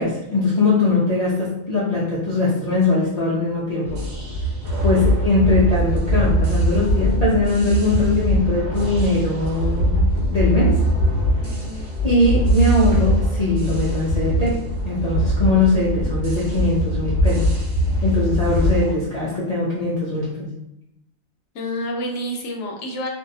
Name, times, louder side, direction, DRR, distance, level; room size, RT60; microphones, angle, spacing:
voice 1, 0.0-4.0 4.8-10.8 12.0-17.5 18.0-20.5, left 2 dB, 90° left, -7 dB, 0.3 m, -21 dB
sound 1, 3.8-18.9, equal, 75° right, 1.2 m, -21 dB
voice 2, 11.4-11.9 21.5-23.1, equal, 65° left, 1 dB, 0.8 m, -29 dB
2.6 x 2.2 x 2.6 m, 0.86 s
omnidirectional pair, 1.4 m